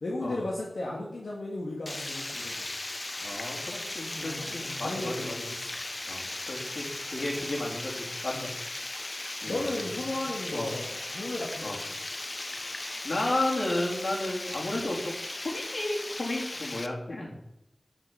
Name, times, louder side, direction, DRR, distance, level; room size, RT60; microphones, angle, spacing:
voice 1, 0.0-2.7 4.1-5.6 7.2-7.3 8.3-8.5 9.5-11.8, left 2 dB, 90° left, -4 dB, 2.2 m, -35 dB
Water, 1.9-16.9, left 2 dB, 40° left, 0.9 m, -37 dB
voice 2, 3.2-5.3 6.1-6.2 6.5-9.0 9.4-9.8 10.5-10.7 11.6-11.8 13.0-15.2 15.4-17.3, left 1 dB, 70° left, -3 dB, 3.9 m, -33 dB
11.5 x 6.5 x 5.9 m, 0.86 s
wide cardioid pair, 65°, 0 cm